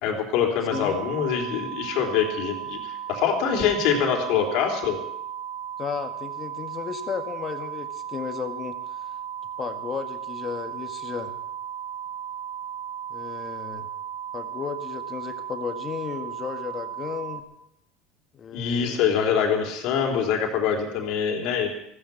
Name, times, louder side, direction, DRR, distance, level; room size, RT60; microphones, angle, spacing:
voice 1, 0.0-4.9 18.5-21.7, left 7 dB, 70° left, 3 dB, 3.5 m, -24 dB
sound 1, 0.7-17.4, right 9 dB, 70° right, 1.2 m, -35 dB
voice 2, 5.8-9.1 9.6-11.3 13.1-13.9 14.3-17.4 18.3-19.3, left 6 dB, 35° left, 7 dB, 1.8 m, -34 dB
14.5 x 14.0 x 6.0 m, 0.75 s
supercardioid pair, 105°, 0 cm